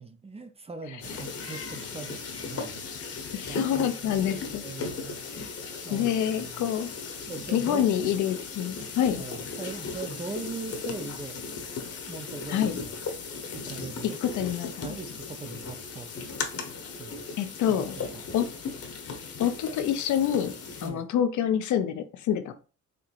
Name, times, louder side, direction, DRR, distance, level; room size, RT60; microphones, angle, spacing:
voice 1, 0.0-2.8 3.5-5.2 5.8-6.7 7.3-7.8 9.1-11.4 12.1-13.0 13.2-14.2 14.8-16.1 17.0-17.2 17.8-18.3 20.8-21.1, right 4 dB, 20° right, 0.4 m, -40 dB
sound 1, 1.0-20.9, left 4 dB, 50° left, 1.0 m, -37 dB
voice 2, 3.3-4.6 5.4-5.5 5.9-6.9 7.5-9.2 12.5-12.8 14.0-15.0 17.4-18.0 18.3-18.5 19.4-20.5 20.8-22.5, left 9 dB, 75° left, 0.6 m, -27 dB
4.4 x 2.8 x 2.5 m
cardioid pair, 90°, 30 cm